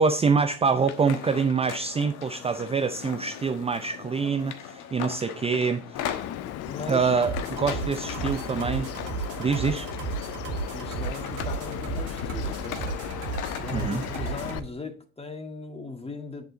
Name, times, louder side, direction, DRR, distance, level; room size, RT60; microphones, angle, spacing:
voice 1, 0.0-6.1 6.9-8.9 9.4-9.9 13.7-14.0, right 5 dB, 20° right, 0.6 m, -25 dB
sound 1, 0.8-14.3, left 10 dB, 60° left, 1.2 m, -39 dB
Bird vocalization bird call bird song, 5.9-14.6, left 12 dB, 45° left, 0.6 m, -37 dB
voice 2, 6.6-7.1 10.7-13.1 13.6-16.4, left 3 dB, 15° left, 1.8 m, -38 dB
sound 2, 7.2-14.6, right 5 dB, 65° right, 2.2 m, -34 dB
7.8 x 7.1 x 4.0 m
hypercardioid pair, 65°, 34 cm